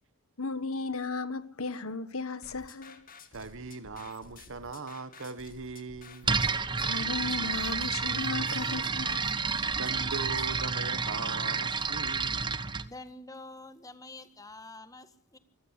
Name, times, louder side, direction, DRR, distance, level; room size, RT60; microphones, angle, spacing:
voice 1, 0.4-3.0 6.3-6.5 6.8-9.3 9.7-9.8, left 4 dB, 65° left, 1.5 m, -35 dB
sound 1, 2.4-10.6, left 4 dB, 40° left, 2.3 m, -52 dB
voice 2, 3.3-6.5 9.8-12.8, right 4 dB, 60° right, 1.4 m, -40 dB
sound 2, 6.2-12.9, right 5 dB, 20° right, 0.8 m, -30 dB
voice 3, 12.8-15.4, left 2 dB, 15° left, 1.6 m, -47 dB
25.5 x 14.5 x 8.3 m
head